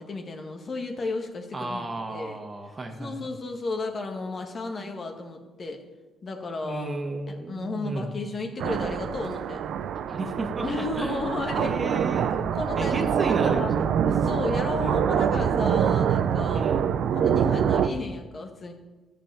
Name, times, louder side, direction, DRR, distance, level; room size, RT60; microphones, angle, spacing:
voice 1, 0.0-2.4 3.0-5.8 6.2-7.0 7.3-9.7 10.6-11.8 12.2-13.7 14.0-16.7 17.1-18.7, left 3 dB, 40° left, 3 dB, 1.8 m, -33 dB
voice 2, 1.5-3.3 6.6-8.2 10.1-12.4 12.8-13.9 14.8-15.0 16.5-16.9 17.9-18.0, right 2 dB, 30° right, 4 dB, 1.8 m, -34 dB
sound 1, 8.6-17.9, right 8 dB, 75° right, 0.6 m, -25 dB
13.5 x 6.9 x 7.0 m, 1.2 s
cardioid pair, 90°, 0 cm